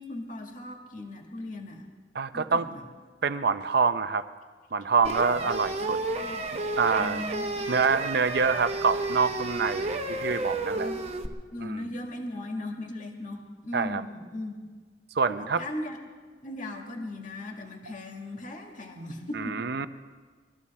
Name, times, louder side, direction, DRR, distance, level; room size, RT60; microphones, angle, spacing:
voice 1, 0.0-1.9 2.3-2.8 5.8-6.4 7.0-7.8 10.3-10.4 10.7-11.1 11.5-14.7 15.3-16.0 16.4-19.6, left 1 dB, 50° left, 2 dB, 1.8 m, -38 dB
voice 2, 2.2-2.7 3.2-4.3 4.7-6.0 6.8-7.2 7.7-10.9 11.6-11.8 13.7-14.0 15.1-15.6 19.3-19.8, right 5 dB, 65° right, 11 dB, 0.6 m, -26 dB
sound 1, 5.0-11.3, right 2 dB, 40° right, 0.9 m, -31 dB
22.0 x 14.0 x 4.3 m, 1.5 s
head